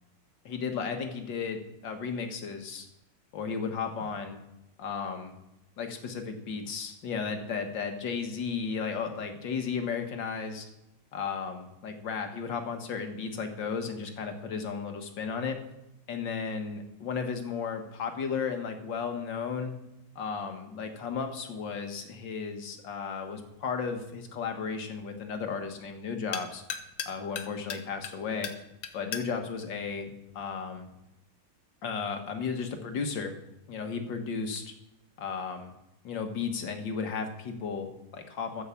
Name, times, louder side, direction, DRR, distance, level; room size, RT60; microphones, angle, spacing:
voice 1, 0.5-2.9 3.3-4.4 4.8-5.3 5.8-10.7 11.1-15.6 16.1-19.7 20.2-26.6 27.1-28.5 28.9-30.9 31.8-33.3 33.7-34.7 35.2-35.7 36.0-38.6, left 5 dB, 65° left, 6 dB, 2.0 m, -34 dB
sound 1, 23.4-30.9, left 8 dB, 80° left, 1.8 m, -43 dB
14.0 x 5.6 x 7.0 m, 0.91 s
omnidirectional pair, 2.2 m